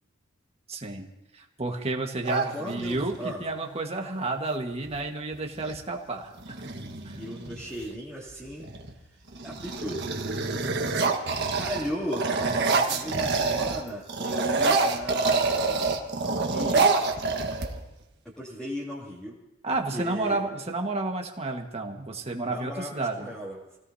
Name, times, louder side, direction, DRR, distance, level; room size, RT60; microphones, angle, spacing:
voice 1, 0.7-1.1 1.3-3.1 3.4-6.6 7.0-7.2 19.6-23.3, right 2 dB, 30° right, 2 dB, 1.6 m, -31 dB
sound 1, 2.2-3.2 4.9-5.0 5.3-5.8 6.4-7.9 8.5-8.9 9.3-13.8 14.1-18.0, right 3 dB, 55° right, 1.5 m, -27 dB
voice 2, 2.5-3.4 7.2-8.7 9.0-10.0 11.6-16.9 18.4-19.3 19.9-20.4 22.4-23.6, equal, 5° left, -9 dB, 2.7 m, -36 dB
28.0 x 17.5 x 2.8 m, 0.96 s
head